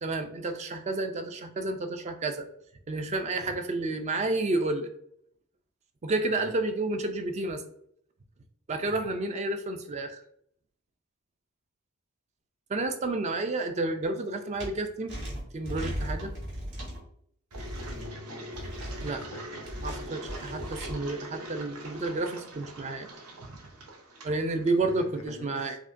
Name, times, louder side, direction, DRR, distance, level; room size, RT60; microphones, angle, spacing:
voice 1, 0.0-2.5 2.9-4.9 6.0-7.6 8.7-10.2 12.7-15.1 15.5-16.4 19.0-19.2 19.8-23.1 23.5-23.6 24.2-25.8, right 2 dB, 30° right, 7 dB, 0.3 m, -30 dB
sound 1, 14.6-14.7 15.1-17.0 17.5-18.1 18.5-19.1 19.6-20.9, equal, 50° right, 1.3 m, -37 dB
Engine, 17.5-25.3, right 1 dB, 90° right, 0.8 m, -43 dB
voice 2, 17.9-18.7 19.1-19.9 24.8-25.8, left 2 dB, 90° left, 6 dB, 0.6 m, -46 dB
4.9 x 2.2 x 2.5 m, 0.68 s
head